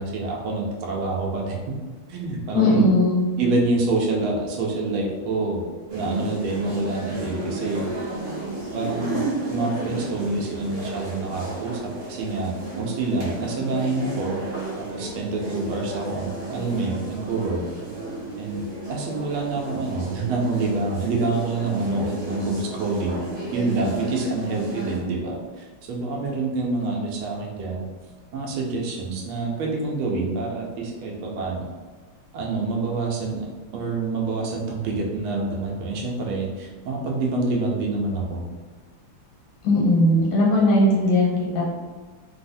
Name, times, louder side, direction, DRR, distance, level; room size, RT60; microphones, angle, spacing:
voice 1, 0.0-1.6 2.1-2.9 3.4-5.6 5.9-7.9 8.7-9.2 9.5-14.4 14.8-17.6 18.4-18.6 18.9-23.2 23.5-27.8 28.3-31.7 32.3-33.5 33.7-38.4, right 3 dB, 80° right, -1 dB, 1.4 m, -27 dB
voice 2, 2.5-3.2 39.6-41.6, left 1 dB, 85° left, -5 dB, 1.8 m, -18 dB
sound 1, 5.9-25.0, right 2 dB, 55° right, 1.7 m, -33 dB
3.9 x 2.0 x 2.6 m, 1.4 s
omnidirectional pair, 2.3 m